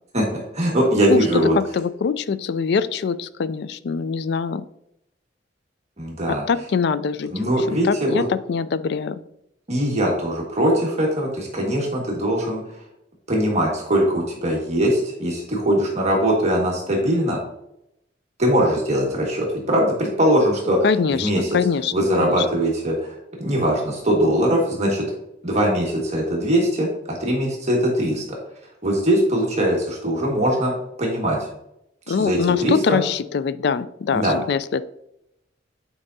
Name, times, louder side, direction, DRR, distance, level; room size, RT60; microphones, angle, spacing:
voice 1, 0.5-1.6 6.0-6.4 7.3-8.2 9.7-12.6 13.3-17.4 18.4-20.8 21.1-21.5 21.9-25.0 25.4-26.9 27.2-28.4 28.8-30.7 31.0-31.5 32.1-33.0 34.1-34.3, equal, 40° right, -2 dB, 1.6 m, -21 dB
voice 2, 1.6-4.6 6.3-7.3 7.8-9.2 20.8-22.5 32.1-34.8, left 5 dB, 65° left, 15 dB, 0.4 m, -23 dB
8.8 x 4.8 x 2.7 m, 0.81 s
head